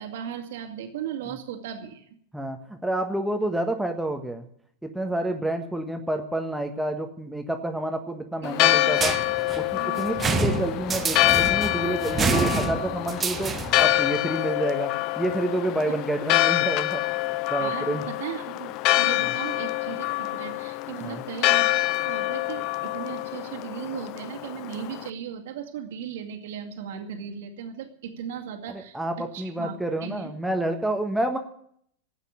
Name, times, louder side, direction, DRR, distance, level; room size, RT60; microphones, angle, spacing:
voice 1, 0.0-2.2 8.4-8.9 9.7-10.3 15.9-16.0 17.6-30.3, right 8 dB, 55° right, 3 dB, 2.2 m, -37 dB
voice 2, 2.3-4.5 4.8-9.2 9.6-14.9 15.2-17.0 17.5-18.0 21.0-21.2 28.7-31.4, right 1 dB, 5° right, 5 dB, 1.4 m, -29 dB
Church bell, 8.4-25.1, left 18 dB, 40° left, 0.5 m, -26 dB
sound 1, 9.0-13.9, right 4 dB, 20° right, 1.4 m, -28 dB
13.5 x 9.0 x 10.0 m, 0.65 s
figure-of-eight pair, 90°, 0 cm